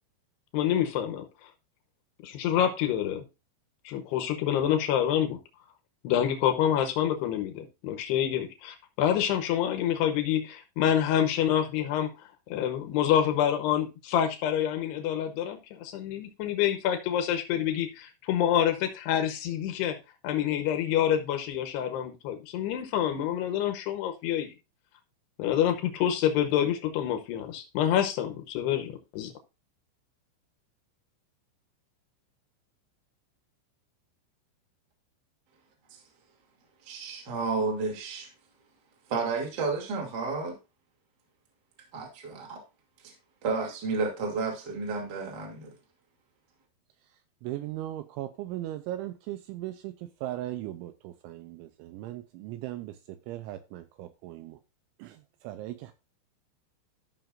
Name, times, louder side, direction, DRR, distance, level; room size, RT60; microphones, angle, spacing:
voice 1, 0.5-1.2 2.2-3.2 3.8-5.4 6.0-12.1 12.5-19.9 20.2-24.5 25.4-29.3, left 10 dB, 80° left, 6 dB, 2.4 m, -27 dB
voice 2, 36.8-38.3 39.1-40.5 41.9-42.6 43.0-43.1 43.4-45.7, right 4 dB, 35° right, 1 dB, 1.7 m, -31 dB
voice 3, 47.4-54.6 55.0-55.9, right 14 dB, 85° right, 10 dB, 2.7 m, -38 dB
14.0 x 6.0 x 2.5 m, 0.27 s
omnidirectional pair, 5.9 m